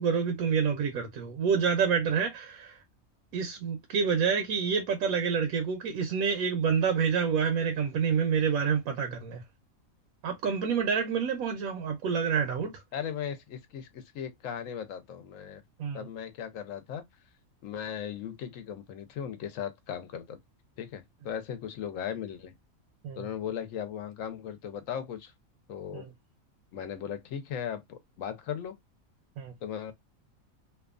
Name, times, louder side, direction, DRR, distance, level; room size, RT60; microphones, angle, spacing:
voice 1, 0.0-2.8 3.3-9.4 10.2-12.7 15.8-16.1 23.0-23.3 25.9-26.1 29.4-29.5, right 6 dB, 80° right, 1.0 m, -28 dB
voice 2, 12.9-15.6 15.9-17.0 17.6-20.4 20.8-22.5 23.2-25.3 25.7-26.1 26.7-28.8 29.6-29.9, left 8 dB, 70° left, 1.0 m, -37 dB
2.7 x 2.3 x 2.4 m
omnidirectional pair, 1.5 m